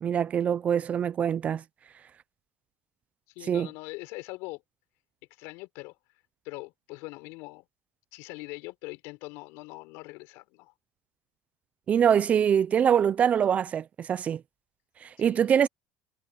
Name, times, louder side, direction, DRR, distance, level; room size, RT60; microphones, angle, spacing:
voice 1, 0.0-1.6 3.5-3.7 11.9-14.4 15.0-15.7, right 8 dB, 30° right, 0.4 m, -24 dB
voice 2, 3.3-4.6 5.4-6.0 6.4-7.7 8.1-10.7 15.2-15.4, left 24 dB, 70° left, 4.2 m, -42 dB
cardioid pair, 145°, 5 cm